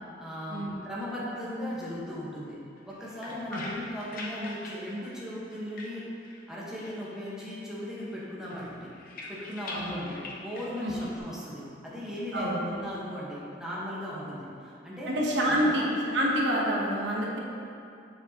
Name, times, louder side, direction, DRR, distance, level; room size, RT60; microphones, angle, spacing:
voice 1, 0.2-2.6 2.8-6.0 6.5-8.9 9.3-15.1 15.5-15.8, equal, 5° right, -8 dB, 1.2 m, -37 dB
sound 1, 2.8-6.5 6.8-7.7 7.9-11.2, left 2 dB, 50° left, 0.9 m, -44 dB
voice 2, 9.7-10.0 10.8-11.0 12.3-12.6 15.1-17.4, equal, 70° right, -3 dB, 1.1 m, -27 dB
7.3 x 7.2 x 2.9 m, 2.6 s
head